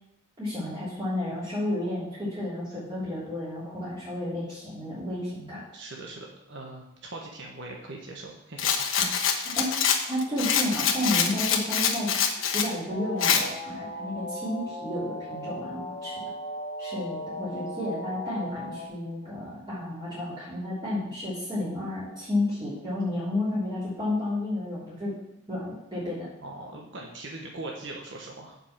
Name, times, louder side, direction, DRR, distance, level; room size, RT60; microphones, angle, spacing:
voice 1, 0.4-5.6 9.0-9.1 9.4-12.1 12.4-16.1 16.8-25.1 25.5-26.3, left 1 dB, 25° right, -12 dB, 3.5 m, -31 dB
voice 2, 5.7-8.7 26.4-28.6, right 2 dB, 60° right, -1 dB, 1.3 m, -41 dB
Rattle, 8.6-12.7 13.2-13.4, left 7 dB, 85° left, 1.2 m, -25 dB
sound 1, 12.9-18.9, left 1 dB, 35° left, 1.2 m, -37 dB
7.4 x 5.6 x 7.3 m, 0.87 s
head